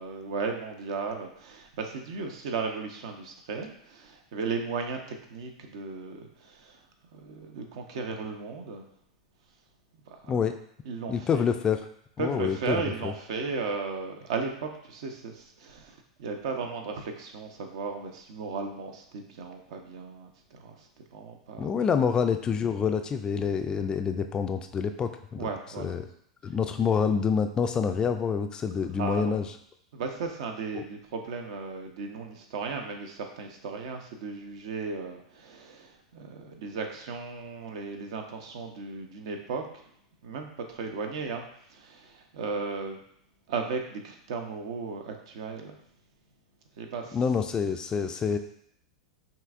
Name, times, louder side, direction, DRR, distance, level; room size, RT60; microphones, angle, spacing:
voice 1, 0.0-6.8 7.1-8.8 10.1-10.4 10.9-11.4 12.2-20.9 21.1-21.8 25.4-26.0 26.8-26.9 29.0-29.4 29.9-39.9 40.2-41.4 41.7-43.0 43.5-45.7 46.8-47.2, right 4 dB, 65° right, 4 dB, 0.7 m, -35 dB
voice 2, 11.1-11.9 12.2-13.1 21.6-25.5 25.8-26.1 26.4-29.5 30.7-30.8 47.1-48.4, left 6 dB, 25° left, 7 dB, 0.3 m, -27 dB
5.6 x 2.7 x 2.4 m, 0.69 s
hypercardioid pair, 95°, 3 cm